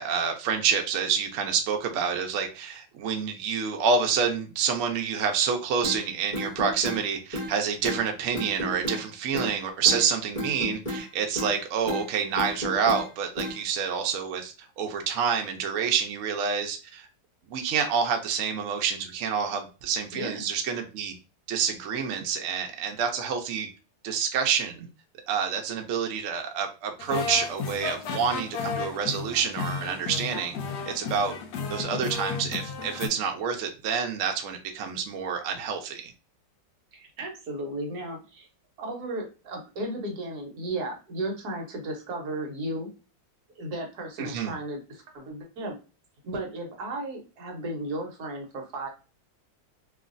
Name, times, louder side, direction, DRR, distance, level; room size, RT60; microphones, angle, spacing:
voice 1, 0.0-17.1 17.5-21.1 21.5-23.7 24.0-24.9 25.3-30.5 30.9-31.4 31.7-36.1 44.2-44.5, right 6 dB, 85° right, 4 dB, 0.7 m, -28 dB
sound 1, 5.8-6.0 6.3-7.0 7.3-7.5 7.8-8.0 8.3-9.0 9.3-9.5 9.9-10.0 10.4-11.1 11.4-11.6 11.9-12.1 12.4-13.0 13.4-13.6, left 1 dB, 25° left, 1.0 m, -32 dB
voice 2, 20.1-20.5 36.9-38.5 38.8-42.9 43.6-45.8 46.2-48.9, right 1 dB, 60° right, 1 dB, 1.3 m, -34 dB
sound 2, 27.0-33.1, left 5 dB, 70° left, 1.0 m, -33 dB
3.0 x 2.5 x 2.5 m, 0.32 s
omnidirectional pair, 2.0 m